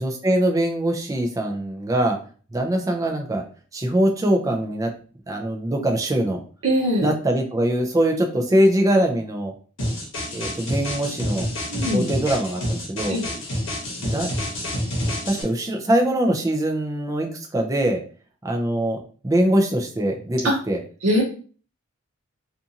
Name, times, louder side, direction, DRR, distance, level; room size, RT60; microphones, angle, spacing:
voice 1, 0.0-2.2 2.5-3.4 3.7-4.9 5.3-6.4 7.0-9.5 10.3-11.5 11.9-13.2 14.0-14.3 15.3-18.0 18.4-19.0 19.2-20.4 20.7-20.8, right 1 dB, 15° right, 2 dB, 0.4 m, -22 dB
voice 2, 6.6-7.1 11.7-12.1 13.1-13.4 20.4-20.6 21.0-21.2, equal, 70° right, -4 dB, 0.7 m, -21 dB
sound 1, 9.8-15.4, equal, 60° left, 0.9 m, -28 dB
2.5 x 2.4 x 2.7 m, 0.40 s
head